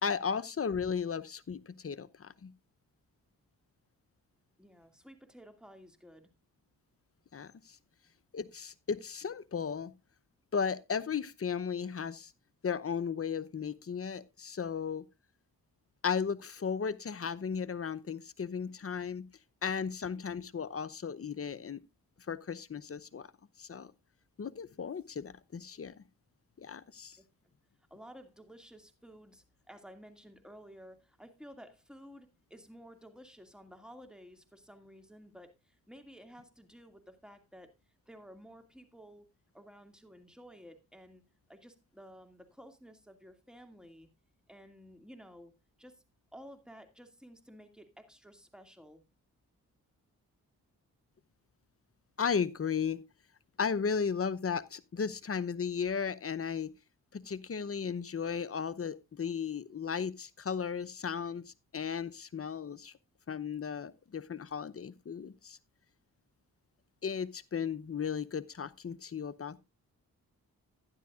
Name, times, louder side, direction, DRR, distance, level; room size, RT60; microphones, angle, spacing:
voice 1, 0.0-2.5 7.3-7.8 8.3-9.9 10.5-12.3 12.6-15.0 16.0-19.3 19.6-21.8 22.3-23.3 23.6-23.9 24.4-25.9 26.6-27.2 52.2-53.0 53.6-56.7 57.1-62.9 63.3-65.6 67.0-69.6, left 6 dB, 35° left, 0.8 m, -35 dB
voice 2, 4.6-6.3 26.8-27.5 27.9-37.7 38.1-39.3 39.5-41.2 41.5-44.1 44.5-45.5 45.8-46.0 46.3-49.0, equal, ahead, 2.4 m, -53 dB
12.0 x 10.5 x 2.5 m
supercardioid pair, 45°, 38 cm